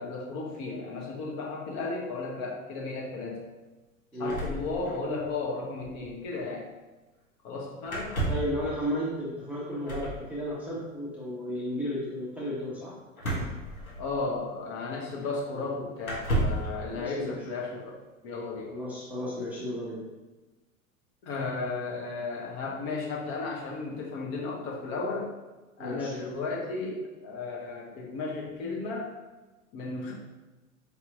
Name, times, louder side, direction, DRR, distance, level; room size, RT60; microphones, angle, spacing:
voice 1, 0.0-3.4 4.2-6.7 7.4-8.2 14.0-18.0 18.2-18.7 21.2-25.3 25.8-29.1 29.7-30.1, left 3 dB, 40° left, -2 dB, 0.8 m, -34 dB
sound 1, 4.2-5.3 5.6-5.7 5.8-6.0 7.9-8.6 9.8-10.2 13.2-14.3 15.2-15.3 16.0-16.7, right 1 dB, 85° left, 1.1 m, -31 dB
voice 2, 8.3-12.9 16.9-17.4 18.7-20.0 25.8-26.1, equal, 5° right, -8 dB, 0.6 m, -33 dB
4.7 x 2.8 x 2.5 m, 1.2 s
figure-of-eight pair, 90°, 41 cm